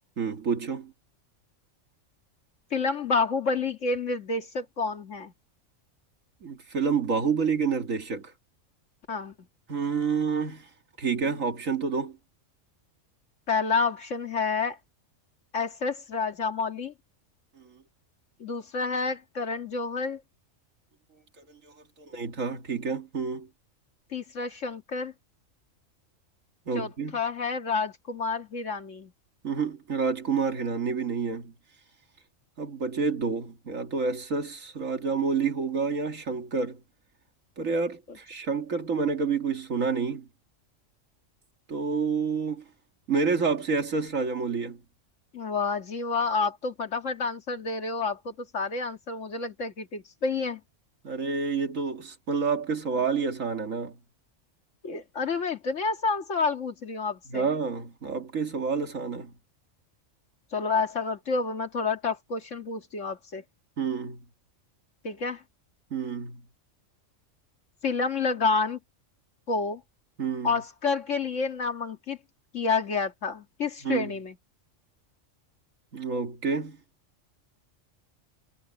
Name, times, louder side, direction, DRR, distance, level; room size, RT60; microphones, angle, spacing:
voice 1, 0.2-0.9 6.4-8.3 9.7-10.7 11.0-12.2 21.6-21.7 22.0-23.5 26.7-27.2 29.4-31.5 32.6-36.8 37.6-40.3 41.7-42.6 43.1-44.8 51.0-54.0 57.3-59.3 63.8-64.2 65.9-66.4 70.2-70.5 73.8-74.1 75.9-76.8, right 5 dB, 90° right, 2.3 m, -28 dB
voice 2, 2.7-5.3 9.1-9.5 13.5-14.8 15.5-16.9 18.4-20.2 24.1-25.1 26.7-29.1 45.3-50.6 54.8-57.5 60.5-63.4 65.0-65.4 67.8-68.8 69.5-69.8 70.4-72.2 72.5-74.4, left 4 dB, 70° left, 2.1 m, -29 dB
omnidirectional pair, 1.3 m